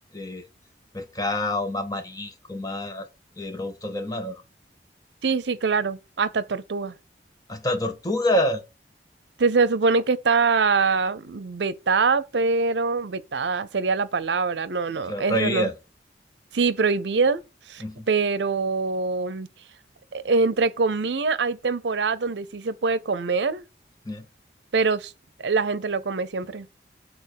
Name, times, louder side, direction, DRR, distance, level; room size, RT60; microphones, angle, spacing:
voice 1, 0.1-0.4 0.9-3.1 3.4-4.4 7.5-8.6 15.1-15.7 17.8-18.1 24.0-24.3, left 1 dB, 20° left, 0.9 m, -27 dB
voice 2, 5.2-6.9 9.4-15.7 16.5-17.4 17.7-19.5 20.1-23.6 24.7-25.1 25.4-26.7, right 4 dB, 80° right, 0.6 m, -24 dB
7.9 x 4.0 x 6.3 m
head